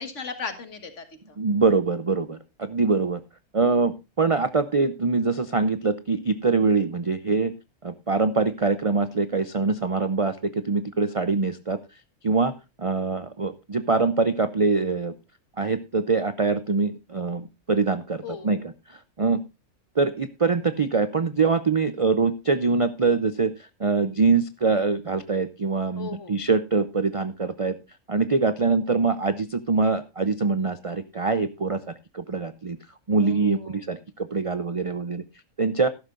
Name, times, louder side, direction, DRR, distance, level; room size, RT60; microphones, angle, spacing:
voice 1, 0.0-1.4 18.2-18.7 25.9-26.4 33.2-33.8, left 5 dB, 55° left, 9 dB, 1.8 m, -37 dB
voice 2, 1.4-3.2 3.5-7.5 7.8-11.8 12.2-12.5 12.8-15.1 15.6-18.6 19.2-19.4 20.0-23.5 23.8-27.8 28.1-31.8 32.1-32.8 33.1-35.2 35.6-35.9, right 4 dB, 60° right, 13 dB, 0.3 m, -24 dB
13.5 x 12.0 x 2.5 m, 0.25 s
omnidirectional pair, 1.5 m